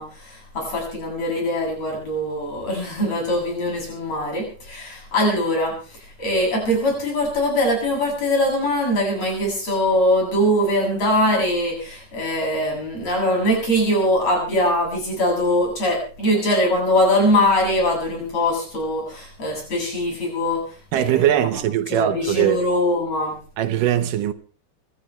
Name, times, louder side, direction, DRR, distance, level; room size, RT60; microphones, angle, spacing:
voice 1, 0.0-21.5 21.9-23.4, left 1 dB, 50° left, 9.2 m, -22 dB
voice 2, 20.9-22.6 23.6-24.3, right 11 dB, 80° right, 2.7 m, -20 dB
27.0 x 13.0 x 3.3 m
omnidirectional pair, 3.8 m